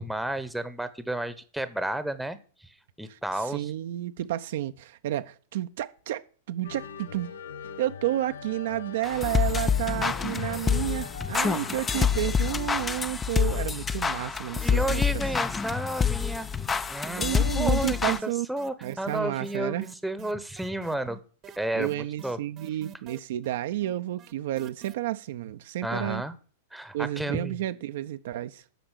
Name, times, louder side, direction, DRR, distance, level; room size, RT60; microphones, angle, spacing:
voice 1, 0.0-3.7 14.6-16.5 16.9-21.2 21.6-22.4 25.8-26.3 26.7-27.6, right 1 dB, ahead, 0.9 m, -32 dB
voice 2, 3.1-7.3 7.8-15.2 17.2-18.5 18.8-19.8 21.7-26.2 26.9-28.6, right 14 dB, 60° right, 0.5 m, -31 dB
sound 1, 6.6-12.9, left 6 dB, 75° left, 0.7 m, -42 dB
sound 2, 9.0-18.2, left 6 dB, 15° left, 0.5 m, -27 dB
sound 3, 17.1-17.6 17.8-24.9, right 10 dB, 30° right, 0.9 m, -47 dB
9.0 x 5.9 x 8.2 m
figure-of-eight pair, 100°, 0 cm